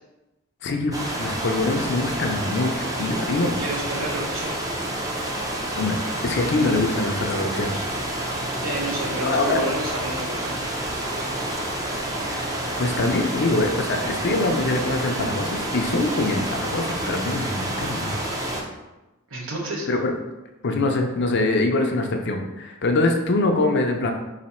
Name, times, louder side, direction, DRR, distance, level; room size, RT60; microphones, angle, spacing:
voice 1, 0.6-3.5 5.7-6.0 6.2-7.7 9.2-9.6 12.3-12.5 12.8-18.2 19.9-20.1 20.6-24.1, left 2 dB, 55° left, 4 dB, 0.6 m, -24 dB
sound 1, 0.9-18.6, right 1 dB, 15° right, 0.6 m, -29 dB
voice 2, 3.5-4.6 7.7-7.8 8.6-10.6 19.3-19.9, right 1 dB, 70° right, -1 dB, 1.0 m, -30 dB
4.1 x 2.7 x 4.3 m, 1.0 s
head